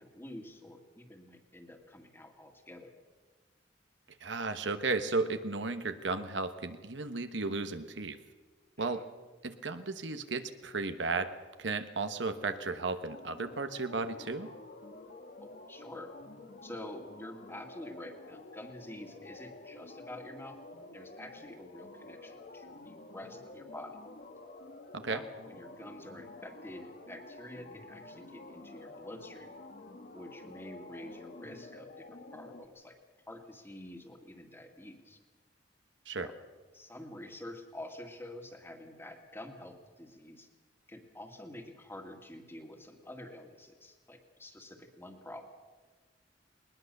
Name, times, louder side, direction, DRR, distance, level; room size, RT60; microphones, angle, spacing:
voice 1, 0.0-2.9 8.8-9.0 15.4-16.1 16.6-20.6 20.9-24.0 25.1-29.5 30.1-33.0 33.3-35.2 36.2-36.3 36.7-40.5 40.9-45.5, left 1 dB, 15° left, 4 dB, 2.0 m, -48 dB
voice 2, 4.2-8.2 8.8-9.1 9.4-11.3 11.6-14.5 24.9-25.2 36.1-36.3, right 3 dB, 90° right, 9 dB, 1.3 m, -34 dB
sound 1, 13.1-32.7, left 2 dB, 55° left, 1.6 m, -50 dB
20.0 x 20.0 x 6.7 m, 1.4 s
head